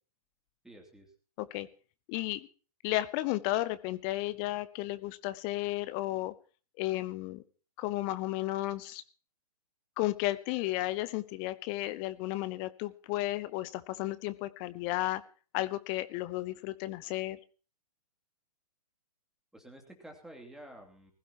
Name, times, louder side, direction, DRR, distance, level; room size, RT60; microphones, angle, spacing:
voice 1, 0.6-1.1 19.5-21.1, right 1 dB, ahead, 2 dB, 2.8 m, -50 dB
voice 2, 2.1-2.5 2.8-6.3 6.8-7.4 7.8-9.0 10.0-15.2 15.5-17.4, left 17 dB, 25° left, 15 dB, 0.7 m, -33 dB
20.5 x 15.5 x 2.9 m, 0.36 s
figure-of-eight pair, 120°, 20 cm